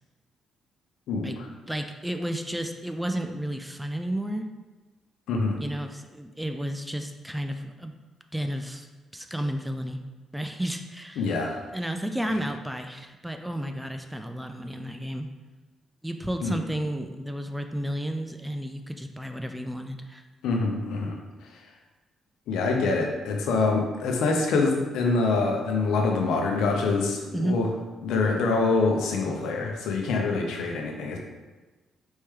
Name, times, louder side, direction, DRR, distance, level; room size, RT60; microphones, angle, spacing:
voice 1, 1.1-1.5 5.3-5.6 11.2-11.7 16.4-16.6 20.4-21.7 22.5-27.7 28.0-31.2, left 3 dB, 85° left, 1 dB, 0.7 m, -25 dB
voice 2, 1.7-4.5 5.6-7.9 8.3-8.9 9.1-10.0 10.3-11.2 11.7-15.3 16.0-20.2 27.3-27.6, right 1 dB, 5° right, 6 dB, 0.4 m, -32 dB
4.4 x 3.1 x 3.6 m, 1.2 s
cardioid pair, 90°, 0 cm